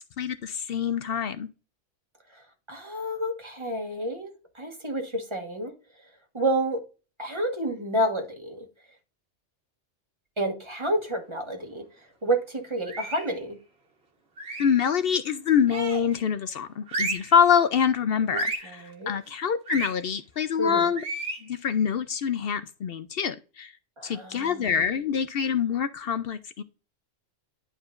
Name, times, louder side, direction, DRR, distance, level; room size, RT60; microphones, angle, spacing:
voice 1, 0.2-1.5 14.6-21.0 21.4-23.7 24.0-26.6, left 7 dB, 60° left, 0.6 m, -25 dB
voice 2, 2.7-5.7 6.3-6.8 7.2-8.6 10.4-11.8 12.2-13.6 18.3-19.1 20.6-20.9 24.0-24.7, right 1 dB, 25° right, 1.4 m, -29 dB
sound 1, 12.9-13.3 14.4-14.8 15.7-16.2 16.9-17.4 18.3-18.7 19.7-19.9 21.0-21.4, right 2 dB, 55° right, 1.9 m, -32 dB
11.0 x 4.8 x 2.5 m
omnidirectional pair, 1.3 m